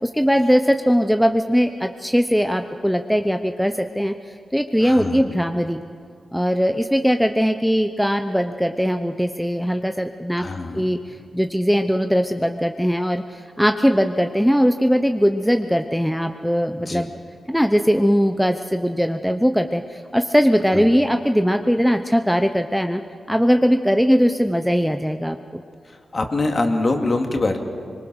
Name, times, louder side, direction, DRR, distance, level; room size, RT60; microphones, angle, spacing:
voice 1, 0.0-5.8 6.3-10.5 10.7-17.1 17.5-23.0 23.3-25.6, equal, ahead, 6 dB, 0.8 m, -20 dB
voice 2, 4.8-5.3 10.4-10.9 16.8-17.0 20.7-20.9 25.9-27.6, left 2 dB, 40° left, 3 dB, 2.4 m, -24 dB
24.0 x 22.0 x 6.4 m, 2.3 s
cardioid pair, 80°, 0 cm